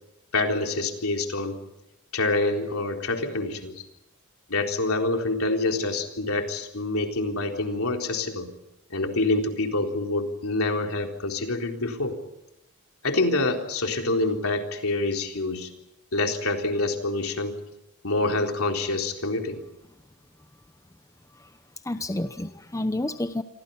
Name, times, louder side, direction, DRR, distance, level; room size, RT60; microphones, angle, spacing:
voice 1, 0.3-1.6 2.1-3.9 4.5-8.5 8.9-12.2 13.0-15.7 16.1-17.6 18.0-19.6, left 2 dB, 75° left, 3 dB, 4.0 m, -26 dB
voice 2, 21.8-23.4, left 1 dB, 15° left, 9 dB, 0.9 m, -30 dB
28.5 x 24.5 x 5.6 m, 0.90 s
head